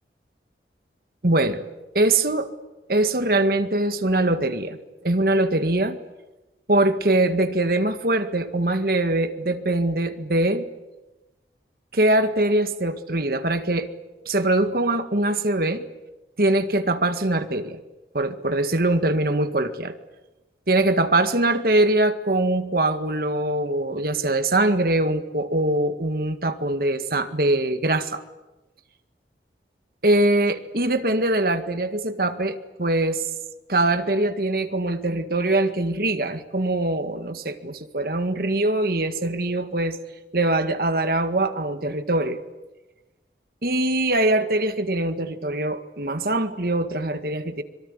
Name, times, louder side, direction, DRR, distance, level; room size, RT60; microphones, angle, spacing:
voice 1, 1.2-1.6 1.9-2.5 2.9-6.0 6.7-10.7 11.9-13.9 14.3-15.8 16.4-17.8 18.1-20.0 20.7-28.2 30.0-33.2 33.7-40.0 40.3-42.4 43.6-47.6, right 2 dB, 55° right, 9 dB, 1.9 m, -22 dB
25.5 x 23.5 x 9.9 m, 1.1 s
head